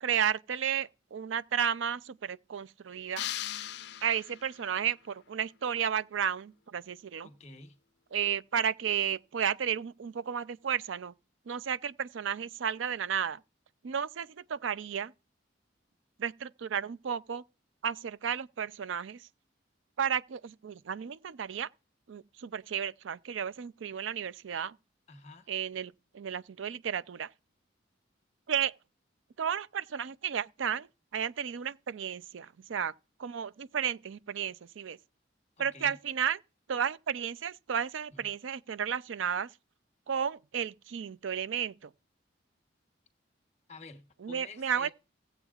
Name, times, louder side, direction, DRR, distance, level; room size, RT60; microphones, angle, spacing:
voice 1, 0.0-3.3 4.0-7.3 8.1-11.1 11.5-13.4 13.8-15.1 16.2-17.4 17.8-19.3 20.0-21.7 22.1-24.7 25.5-27.3 28.5-28.7 29.4-30.9 31.1-32.9 33.2-35.0 35.6-36.4 36.7-39.5 40.1-41.9 44.2-44.9, right 8 dB, 90° right, 0.5 m, -33 dB
sound 1, 3.2-4.7, left 13 dB, 60° left, 0.4 m, -38 dB
voice 2, 7.2-7.8 25.1-25.5 35.6-36.0 38.1-38.3 43.7-44.9, left 3 dB, 35° left, 1.1 m, -50 dB
16.0 x 8.0 x 2.4 m
head